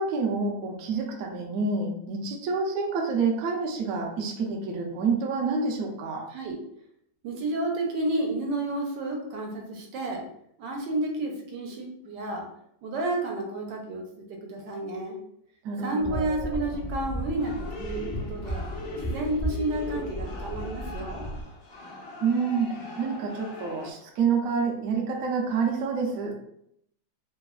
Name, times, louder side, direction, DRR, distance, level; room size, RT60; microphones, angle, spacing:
voice 1, 0.0-6.3 15.6-16.6 22.2-26.3, right 5 dB, 70° right, 1 dB, 0.8 m, -28 dB
voice 2, 6.3-6.6 7.2-10.2 10.6-12.5 12.8-15.2 15.8-18.7 19.1-21.3, right 2 dB, 90° right, 1 dB, 1.3 m, -31 dB
sound 1, 16.0-21.4, right 1 dB, 35° left, 0.5 m, -34 dB
sound 2, 16.6-23.9, left 3 dB, 85° left, 1.3 m, -41 dB
3.2 x 2.0 x 2.3 m, 0.71 s
omnidirectional pair, 1.9 m